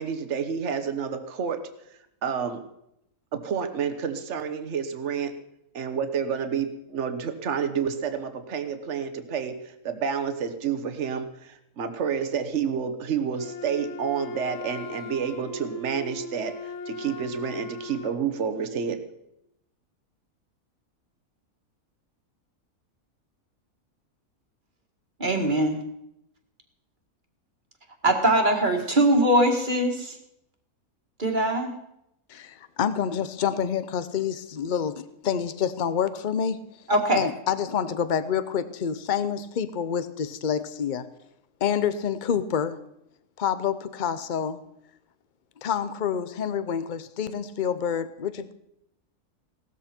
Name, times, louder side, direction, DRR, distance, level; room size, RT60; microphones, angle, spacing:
voice 1, 0.0-1.6 2.2-2.6 3.3-5.3 5.7-9.5 9.8-19.0, right 7 dB, 50° right, 8 dB, 1.4 m, -29 dB
Wind instrument woodwind instrument, 13.3-18.2, left 3 dB, 60° left, 1.4 m, -39 dB
voice 2, 25.2-25.8 28.0-30.2 31.2-31.7 36.9-37.2, right 1 dB, 30° right, 3 dB, 2.0 m, -22 dB
voice 3, 32.3-36.6 37.1-41.1 41.6-42.8 43.4-44.6 45.6-48.5, left 8 dB, 40° left, 13 dB, 0.7 m, -27 dB
17.5 x 13.5 x 4.4 m, 0.80 s
omnidirectional pair, 1.6 m